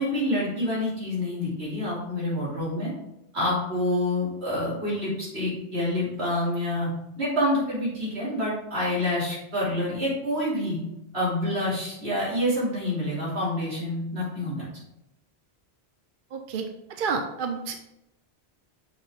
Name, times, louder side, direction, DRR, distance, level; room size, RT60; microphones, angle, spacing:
voice 1, 0.0-2.9 3.3-6.9 7.2-10.8 11.1-14.7, left 1 dB, 80° right, -6 dB, 3.1 m, -27 dB
voice 2, 16.3-17.7, right 5 dB, 60° right, 5 dB, 0.7 m, -30 dB
6.5 x 5.2 x 3.5 m, 0.86 s
omnidirectional pair, 1.1 m